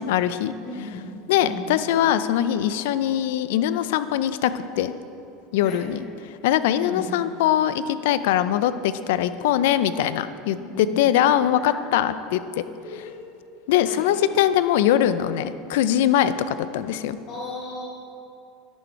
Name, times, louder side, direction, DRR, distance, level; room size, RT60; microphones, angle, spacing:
voice 1, 0.0-0.5 1.3-4.9 5.5-12.6 13.7-17.2, left 11 dB, 80° left, 13 dB, 0.4 m, -22 dB
voice 2, 0.6-1.8 5.6-5.9 6.8-7.2 10.6-11.0 11.6-11.9 12.8-13.1 13.8-14.1 17.3-17.8, left 2 dB, 50° left, -1 dB, 1.3 m, -37 dB
11.0 x 6.3 x 4.5 m, 2.5 s
supercardioid pair, 125°, 0 cm